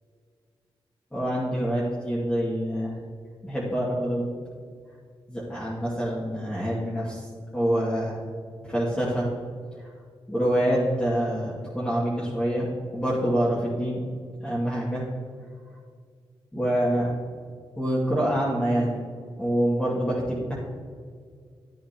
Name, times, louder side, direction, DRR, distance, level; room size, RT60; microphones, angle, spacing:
voice 1, 1.1-3.0 3.4-4.2 5.3-8.2 8.6-9.3 9.8-9.9 10.3-12.7 12.9-14.0 14.4-15.0 16.5-17.1 17.8-19.0 19.4-20.6, equal, 10° left, -8 dB, 2.3 m, -26 dB
11.5 x 9.2 x 3.0 m, 2.1 s
cardioid pair, 85°, 10 cm